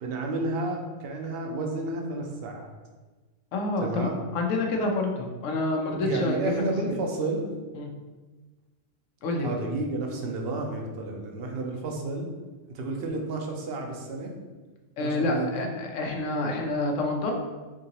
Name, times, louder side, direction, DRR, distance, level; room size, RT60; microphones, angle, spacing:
voice 1, 0.0-2.7 3.8-4.2 6.0-7.5 9.4-12.3 12.7-14.4 15.0-15.7, right 2 dB, 60° right, 2 dB, 0.8 m, -31 dB
voice 2, 3.5-6.5 7.7-7.9 9.2-9.6 15.0-17.3, left 2 dB, 75° left, 2 dB, 1.0 m, -28 dB
3.8 x 3.7 x 2.8 m, 1.3 s
omnidirectional pair, 1.3 m